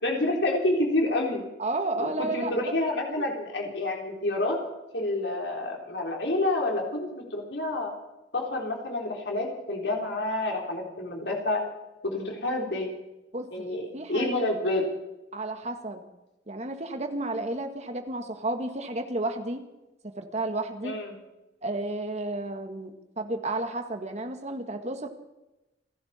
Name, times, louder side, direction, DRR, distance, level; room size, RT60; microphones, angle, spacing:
voice 1, 0.0-1.5 2.0-4.6 4.9-7.9 8.3-11.6 12.0-12.9 13.5-14.9 20.8-21.1, left 2 dB, 70° left, 1 dB, 3.8 m, -28 dB
voice 2, 1.6-2.7 3.1-3.3 13.3-14.4 15.3-16.0 16.5-19.6 20.0-21.0 21.6-25.1, right 2 dB, 40° right, 7 dB, 1.7 m, -32 dB
29.0 x 11.5 x 4.4 m, 0.98 s
head